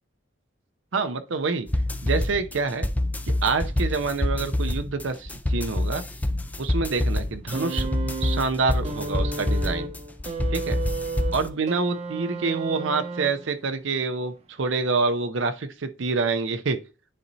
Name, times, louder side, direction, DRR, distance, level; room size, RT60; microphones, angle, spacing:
voice 1, 0.9-1.7 2.0-2.9 3.4-6.0 6.6-7.9 8.2-9.9 10.5-10.8 11.3-16.8, right 4 dB, 65° right, 0.6 m, -27 dB
sound 1, 1.7-11.5, left 1 dB, 10° left, 0.3 m, -27 dB
sound 2, 7.5-13.7 14.7-14.8, right 3 dB, 35° right, 0.7 m, -33 dB
9.8 x 4.1 x 2.7 m
head